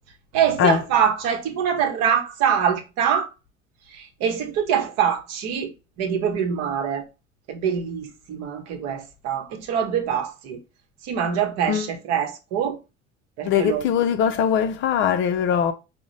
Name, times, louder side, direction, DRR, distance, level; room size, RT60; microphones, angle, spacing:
voice 1, 0.3-3.3 3.9-5.7 6.0-7.1 7.5-10.6 11.0-12.8 13.4-13.8, right 8 dB, 50° right, 0.9 m, -24 dB
voice 2, 13.5-15.7, left 8 dB, 35° left, 0.5 m, -21 dB
4.9 x 2.1 x 3.8 m
figure-of-eight pair, 60°, 34 cm